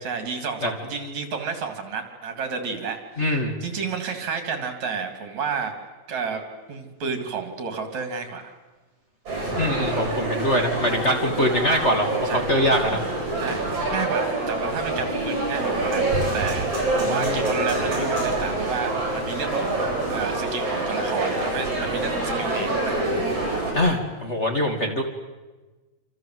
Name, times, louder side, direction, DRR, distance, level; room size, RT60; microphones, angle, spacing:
voice 1, 0.0-5.7 6.1-6.4 6.7-8.5 12.2-12.4 13.4-23.0, right 5 dB, 70° right, 6 dB, 4.4 m, -31 dB
voice 2, 3.2-3.5 9.6-13.0 17.1-17.4 23.7-25.0, equal, 25° left, 1 dB, 2.5 m, -23 dB
sound 1, 9.3-23.7, right 2 dB, 50° right, 9.0 m, -26 dB
27.5 x 27.0 x 7.9 m, 1.2 s
omnidirectional pair, 3.4 m